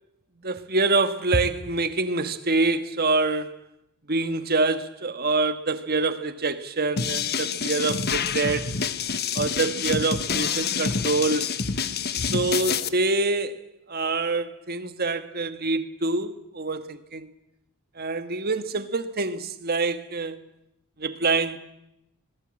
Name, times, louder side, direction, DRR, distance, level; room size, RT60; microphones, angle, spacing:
voice 1, 0.4-3.5 4.1-8.7 9.3-11.5 12.3-13.6 13.9-17.3 18.0-20.4 21.0-21.6, right 3 dB, 45° right, 1.5 m, -26 dB
sound 1, 7.0-12.9, left 6 dB, 45° left, 1.2 m, -27 dB
25.0 x 19.5 x 8.8 m
head